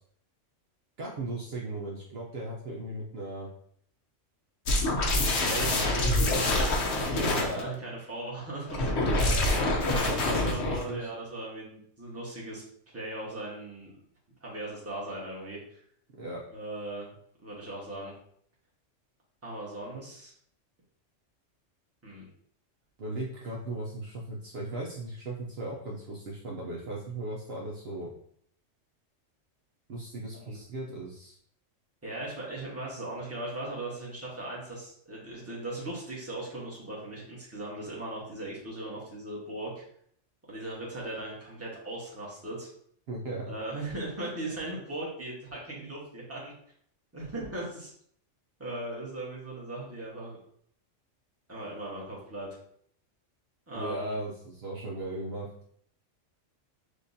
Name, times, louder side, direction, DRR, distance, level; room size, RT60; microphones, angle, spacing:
voice 1, 1.0-3.5 5.4-6.4 7.1-7.7 9.0-11.1 16.2-16.4 23.0-28.1 29.9-31.4 43.1-43.5 53.7-55.5, right 1 dB, 60° right, -3 dB, 0.9 m, -37 dB
sound 1, 4.7-7.6 8.7-10.9, left 2 dB, 65° left, 1.0 m, -26 dB
voice 2, 5.4-6.8 7.1-8.9 9.8-12.6 12.9-13.9 14.4-15.8 16.5-18.1 19.4-20.3 22.0-22.3 30.3-30.6 32.0-39.8 40.5-42.7 43.5-46.5 47.1-47.9 48.6-50.4 51.5-52.5 53.7-54.1, right 2 dB, 10° right, -6 dB, 1.2 m, -38 dB
6.4 x 2.5 x 2.7 m, 0.65 s
omnidirectional pair, 1.3 m